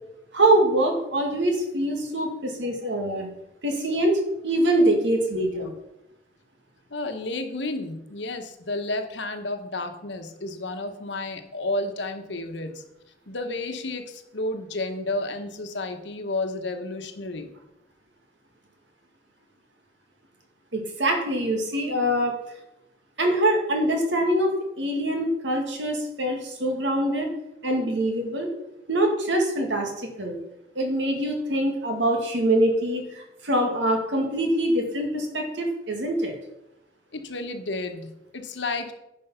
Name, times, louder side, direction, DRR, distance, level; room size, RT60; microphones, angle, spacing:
voice 1, 0.3-3.3 3.6-5.7 20.7-22.3 23.2-27.3 27.6-28.5 28.9-30.4 30.8-36.3, right 1 dB, 75° right, 3 dB, 2.1 m, -24 dB
voice 2, 6.9-12.8 13.3-17.5 37.1-38.9, left 2 dB, 75° left, 7 dB, 1.2 m, -31 dB
10.5 x 5.5 x 5.7 m, 0.87 s
head